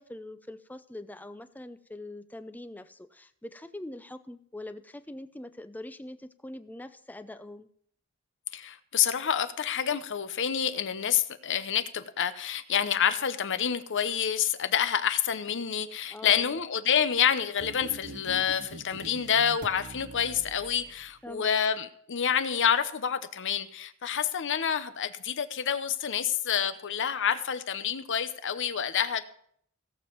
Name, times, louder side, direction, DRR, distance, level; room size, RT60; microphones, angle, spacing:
voice 1, 0.0-7.7 16.1-16.6 21.2-21.5, left 1 dB, 10° left, 11 dB, 0.5 m, -43 dB
voice 2, 8.5-29.3, left 8 dB, 60° left, 12 dB, 0.8 m, -28 dB
sound 1, 17.6-21.3, right 3 dB, 55° right, 0.8 m, -45 dB
17.0 x 7.3 x 4.6 m, 0.64 s
head